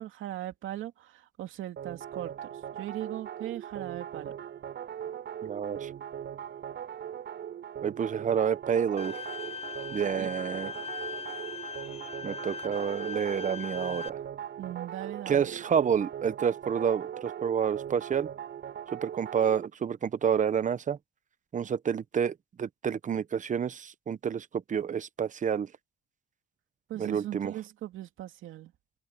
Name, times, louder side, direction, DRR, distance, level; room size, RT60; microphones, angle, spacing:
voice 1, 0.0-2.3 2.8-4.3 10.2-10.8 14.6-15.5 26.9-28.7, right 13 dB, 85° right, 2.6 m, -39 dB
sound 1, 1.8-19.7, right 9 dB, 65° right, 3.9 m, -40 dB
voice 2, 5.4-5.9 7.8-9.1 9.9-10.7 12.2-14.2 15.3-18.3 18.9-21.0 21.5-25.7 27.0-27.5, right 7 dB, 40° right, 0.8 m, -29 dB
Bowed string instrument, 9.0-14.1, left 5 dB, 30° left, 0.4 m, -40 dB
cardioid pair, 90°, 20 cm